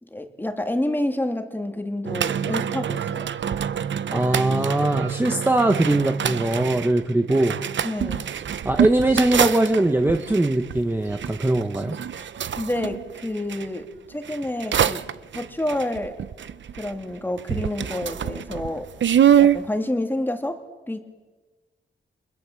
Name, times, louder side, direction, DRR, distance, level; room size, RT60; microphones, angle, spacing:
voice 1, 0.0-3.3 5.3-5.4 7.8-8.3 12.6-15.0 15.3-16.1 16.8-18.9 19.4-20.6 20.9-21.0, left 1 dB, 10° left, 5 dB, 2.1 m, -28 dB
sound 1, 2.0-13.7 14.2-17.1 17.4-19.6, right 9 dB, 70° right, 0.8 m, -25 dB
voice 2, 4.1-7.6 8.6-12.0, right 1 dB, 10° right, 5 dB, 1.0 m, -21 dB
29.5 x 23.5 x 7.6 m, 1.3 s
wide cardioid pair, 165°, 20 cm